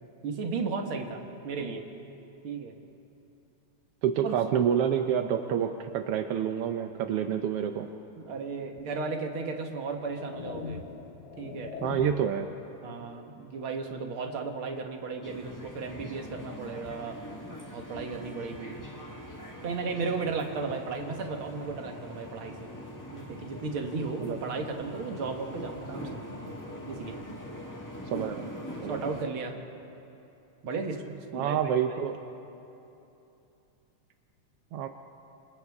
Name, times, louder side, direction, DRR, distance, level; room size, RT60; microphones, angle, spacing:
voice 1, 0.2-1.9 2.4-2.7 4.2-4.3 8.2-10.8 11.4-11.8 12.8-17.2 17.7-18.8 19.6-22.7 23.1-26.2 26.9-27.2 28.4-28.5 28.9-29.5 30.6-31.0 31.3-31.6, right 4 dB, 50° right, 3 dB, 2.0 m, -35 dB
voice 2, 4.0-7.9 11.8-12.5 24.2-24.4 28.1-28.5 28.8-29.0 31.3-32.2 34.7-34.9, right 9 dB, 75° right, 6 dB, 1.4 m, -28 dB
sound 1, 8.8-8.9 9.7-12.4, left 5 dB, 75° left, 2.4 m, -41 dB
sound 2, 15.2-29.2, left 1 dB, 15° left, 0.7 m, -42 dB
28.5 x 27.0 x 3.6 m, 2.8 s
omnidirectional pair, 3.5 m